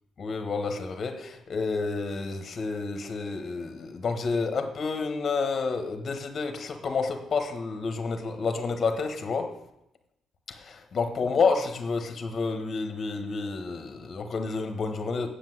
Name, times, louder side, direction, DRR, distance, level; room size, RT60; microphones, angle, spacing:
voice 1, 0.2-9.5 10.5-15.3, left 4 dB, 50° left, 7 dB, 1.3 m, -29 dB
7.4 x 6.6 x 7.9 m, 0.83 s
cardioid pair, 90°, 0 cm